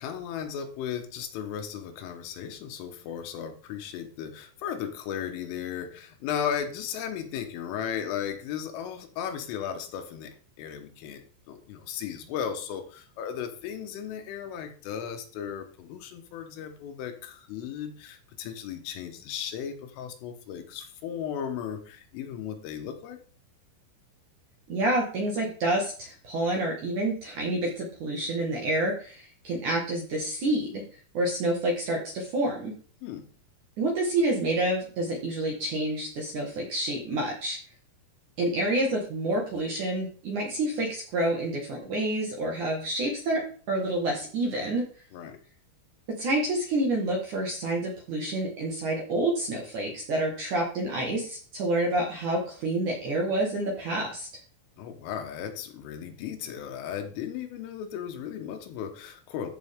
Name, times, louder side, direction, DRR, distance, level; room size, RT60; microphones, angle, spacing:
voice 1, 0.0-23.2 33.0-33.3 45.1-45.4 54.8-59.5, left 8 dB, 85° left, 6 dB, 3.7 m, -36 dB
voice 2, 24.7-30.8 31.1-32.7 33.8-37.6 38.4-44.9 46.1-54.3, right 1 dB, 60° right, -1 dB, 2.2 m, -28 dB
13.5 x 6.1 x 3.6 m, 0.42 s
omnidirectional pair, 5.6 m